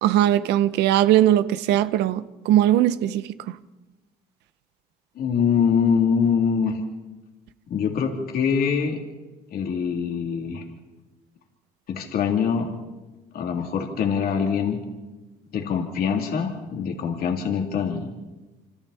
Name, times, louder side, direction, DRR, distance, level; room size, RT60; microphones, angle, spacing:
voice 1, 0.0-3.3, right 12 dB, 85° right, 0.9 m, -19 dB
voice 2, 5.1-6.8 7.7-9.0 9.5-10.6 11.9-12.7 13.3-14.8 15.5-18.1, left 6 dB, 65° left, 3.2 m, -24 dB
27.0 x 26.5 x 4.4 m
cardioid pair, 110°, 17 cm